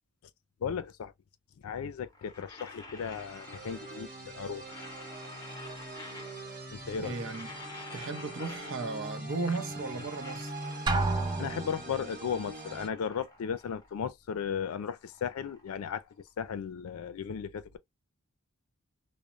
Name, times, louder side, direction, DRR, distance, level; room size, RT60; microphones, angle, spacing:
voice 1, 0.6-1.1 1.6-4.6 6.7-7.2 11.4-16.0 16.4-17.8, left 7 dB, 80° left, 0.4 m, -35 dB
sound 1, 2.0-4.2 4.5-6.7 7.0-9.2 9.5-11.6 12.0-14.0 14.3-16.5, left 2 dB, 15° left, 0.7 m, -50 dB
sound 2, 3.0-12.9, right 1 dB, 45° right, 1.0 m, -43 dB
voice 2, 7.0-7.5 7.9-10.5, right 3 dB, 65° right, 0.7 m, -35 dB
Drum, 10.9-12.1, right 2 dB, 20° right, 0.4 m, -30 dB
3.0 x 2.0 x 2.4 m
head